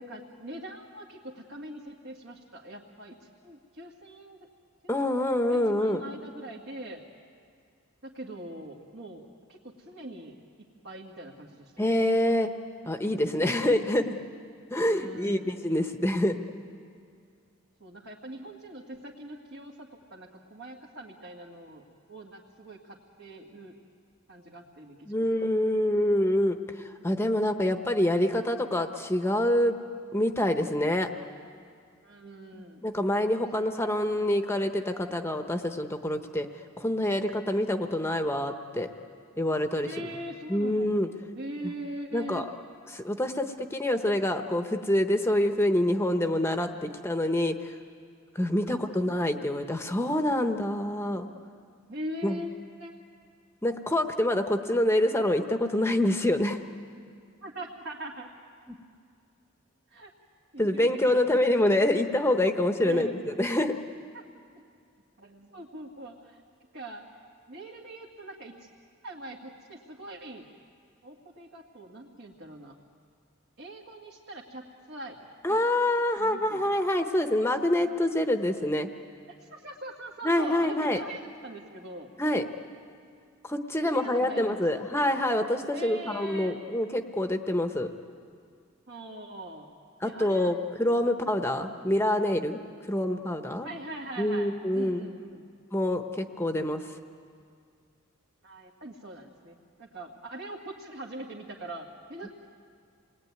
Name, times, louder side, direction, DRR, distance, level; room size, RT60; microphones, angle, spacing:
voice 1, 0.1-4.4 5.2-7.0 8.0-9.2 9.5-11.8 14.8-15.5 17.8-23.8 24.3-25.4 32.0-32.8 33.7-33.9 34.1-34.3 39.8-40.9 41.4-42.5 46.9-47.1 48.6-49.1 51.9-52.5 52.8-52.9 57.4-58.3 59.9-60.1 60.5-61.7 62.8-63.3 64.1-64.2 65.2-66.4 66.7-67.1 67.5-68.7 69.0-70.5 71.0-72.8 73.6-75.2 75.5-75.8 76.1-76.6 79.3-82.1 83.8-84.8 85.7-86.6 88.9-89.7 90.0-90.6 91.0-91.9 93.6-95.4 98.4-102.3, right 1 dB, 60° right, -3 dB, 2.1 m, -42 dB
voice 2, 4.9-6.0 11.8-12.5 12.8-14.2 14.7-16.4 25.1-26.6 27.0-29.8 30.1-31.1 32.5-36.5 36.8-38.9 39.4-39.9 40.5-41.1 42.1-42.4 42.9-47.7 48.3-51.3 52.2-52.4 53.6-56.6 58.7-58.8 60.6-63.8 75.4-78.9 80.2-81.0 82.2-82.4 83.4-87.9 90.0-92.6 92.9-93.7 94.2-95.1 95.7-96.8 102.2-102.3, left 1 dB, 10° left, 6 dB, 1.0 m, -26 dB
28.0 x 21.0 x 9.5 m, 2.3 s
head